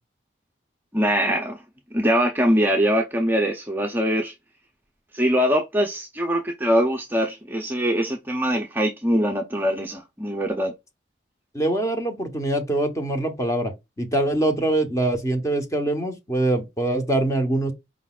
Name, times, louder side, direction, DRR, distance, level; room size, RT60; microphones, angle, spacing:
voice 1, 0.9-1.6 1.9-4.3 5.1-10.7, equal, 10° right, 0.6 m, -22 dB
voice 2, 11.5-17.7, right 1 dB, 15° left, 1.0 m, -24 dB
4.8 x 3.8 x 2.4 m
head